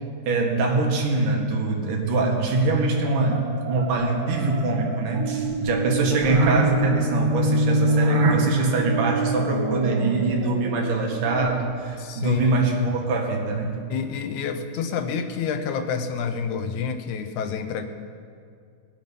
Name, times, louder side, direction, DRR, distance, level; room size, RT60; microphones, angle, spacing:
voice 1, 0.2-13.7, right 3 dB, 80° right, 0 dB, 3.2 m, -23 dB
sound 1, 2.7-11.8, right 2 dB, 60° right, 2.2 m, -26 dB
voice 2, 12.0-12.6 13.9-17.8, left 6 dB, 75° left, 7 dB, 2.1 m, -28 dB
20.5 x 7.6 x 5.4 m, 2.2 s
omnidirectional pair, 3.6 m